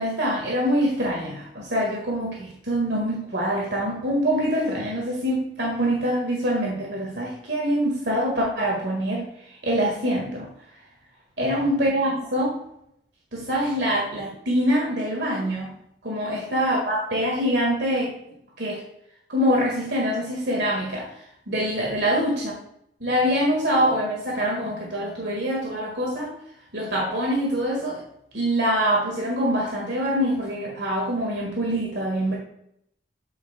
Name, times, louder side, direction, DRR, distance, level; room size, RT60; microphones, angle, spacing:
voice 1, 0.0-9.2 9.6-10.5 11.4-12.6 13.3-15.7 16.0-18.1 18.6-18.8 19.3-21.1 21.5-22.5 23.0-26.3 26.7-28.0 28.3-32.4, equal, 70° right, -1 dB, 1.7 m, -24 dB
8.2 x 8.1 x 2.2 m, 0.74 s
head